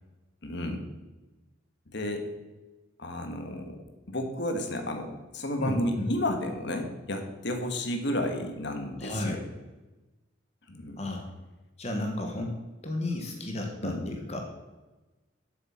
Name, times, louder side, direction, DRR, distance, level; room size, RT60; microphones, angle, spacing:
voice 1, 0.4-0.8 1.9-2.3 3.0-3.8 4.1-9.4 10.7-11.0 13.8-14.0, left 1 dB, 55° left, 5 dB, 1.5 m, -32 dB
voice 2, 5.6-6.1 9.0-9.4 11.0-11.2 11.8-12.6 12.8-14.4, left 1 dB, 30° left, 2 dB, 1.4 m, -33 dB
7.9 x 7.4 x 7.4 m, 1.1 s
head